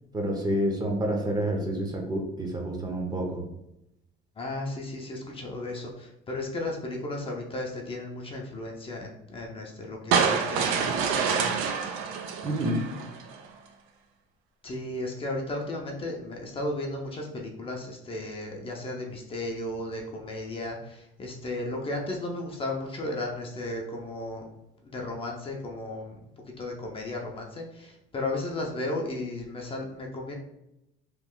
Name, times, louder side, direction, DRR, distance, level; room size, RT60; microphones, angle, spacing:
voice 1, 0.1-3.4 12.4-12.9, right 1 dB, 20° right, 1 dB, 0.7 m, -28 dB
voice 2, 4.4-11.6 14.6-24.5 24.8-26.2 26.6-30.3, left 2 dB, 25° left, 0 dB, 0.5 m, -34 dB
sound 1, 10.1-13.4, right 6 dB, 85° right, 0.5 m, -27 dB
3.1 x 2.3 x 3.6 m, 0.86 s
cardioid pair, 120°, 20 cm